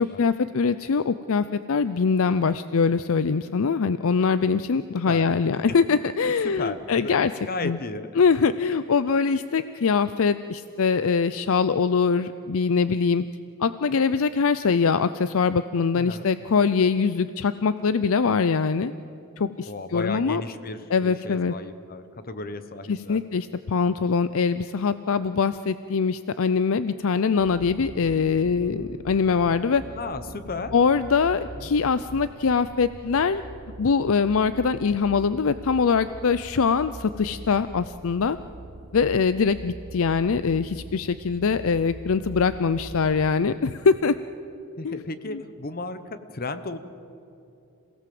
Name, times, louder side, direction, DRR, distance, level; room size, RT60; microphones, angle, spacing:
voice 1, 0.0-7.3 7.6-7.8 8.2-13.2 13.6-18.9 19.4-20.4 20.9-21.5 22.9-29.8 30.7-33.4 33.8-38.4 38.9-44.2 44.8-45.0 45.3-45.4, left 5 dB, 65° left, 13 dB, 0.5 m, -23 dB
voice 2, 6.6-7.2 7.5-8.1 15.9-16.2 19.7-23.2 29.9-30.9 31.5-31.7 44.8-46.8, left 3 dB, 40° left, 11 dB, 1.0 m, -34 dB
sound 1, 27.3-43.6, right 2 dB, 55° right, 1.0 m, -43 dB
27.5 x 17.5 x 7.7 m, 2.7 s
head